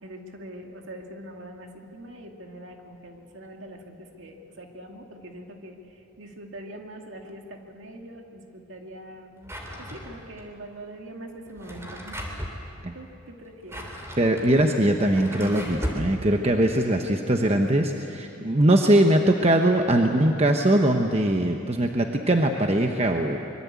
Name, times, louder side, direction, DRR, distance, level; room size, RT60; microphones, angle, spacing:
voice 1, 0.0-12.2 12.9-13.9, right 1 dB, 60° right, 2 dB, 2.4 m, -43 dB
Drawer open or close, 9.4-10.4 11.5-12.6 13.4-16.1, equal, 10° right, 3.0 m, -36 dB
voice 2, 14.2-23.4, right 1 dB, 30° right, 3 dB, 1.0 m, -21 dB
24.5 x 22.5 x 8.4 m, 2.9 s
head